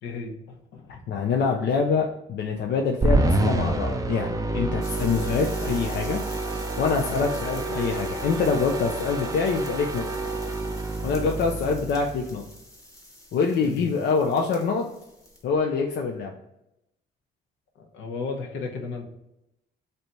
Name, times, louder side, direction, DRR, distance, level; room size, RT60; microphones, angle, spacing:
voice 1, 0.0-1.0 7.1-7.2 11.2-11.4 13.6-13.9 17.8-19.0, left 4 dB, 80° left, 2 dB, 0.9 m, -35 dB
voice 2, 1.1-6.2 6.8-10.1 11.0-12.4 13.3-14.9 15.4-16.3, left 5 dB, 60° left, 2 dB, 0.5 m, -25 dB
sound 1, 3.0-12.4, right 2 dB, 15° right, 0.4 m, -28 dB
sound 2, 4.8-15.6 15.9-16.2, left 1 dB, 15° left, 1.1 m, -46 dB
3.3 x 2.7 x 4.2 m, 0.87 s
cardioid pair, 90°, 20 cm